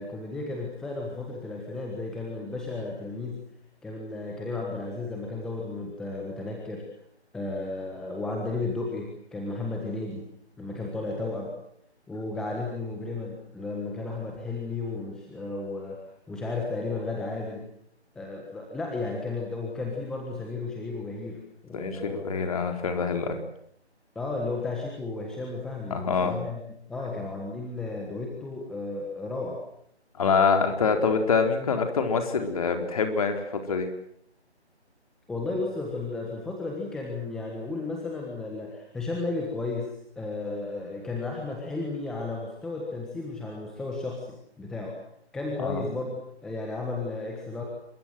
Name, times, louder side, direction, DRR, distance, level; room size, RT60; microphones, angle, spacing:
voice 1, 0.0-3.4 3.8-6.8 7.3-10.2 10.6-11.5 12.1-16.0 16.3-17.7 18.1-22.3 24.1-29.6 35.3-45.0 45.3-47.6, left 3 dB, ahead, -1 dB, 1.4 m, -33 dB
voice 2, 21.7-23.4 25.9-26.3 30.2-33.9 45.6-45.8, left 5 dB, 30° left, 5 dB, 4.2 m, -25 dB
27.0 x 23.5 x 7.8 m, 0.71 s
figure-of-eight pair, 155°, 34 cm